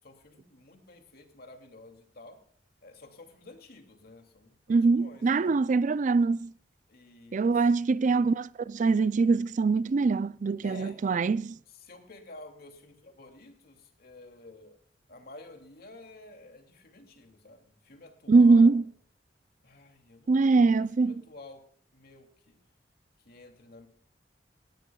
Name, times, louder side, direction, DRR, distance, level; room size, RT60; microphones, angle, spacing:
voice 1, 0.0-2.4 2.8-5.6 6.9-7.7 10.6-11.0 11.7-14.8 15.1-18.8 19.6-21.7 21.9-22.6 23.2-23.9, left 2 dB, 60° left, 2.6 m, -51 dB
voice 2, 4.7-6.5 7.3-11.6 18.3-18.8 20.3-21.1, right 4 dB, 45° right, 0.4 m, -23 dB
19.0 x 16.5 x 2.3 m
head